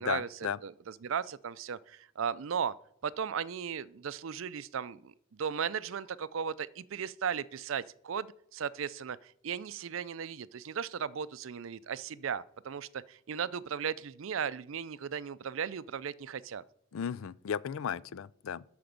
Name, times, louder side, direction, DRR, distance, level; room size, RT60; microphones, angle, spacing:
voice 1, 0.0-0.6 16.9-18.6, left 7 dB, 80° left, 0.4 m, -35 dB
voice 2, 0.6-2.7 3.0-16.6, right 7 dB, 75° right, 0.4 m, -36 dB
13.0 x 5.2 x 5.2 m
head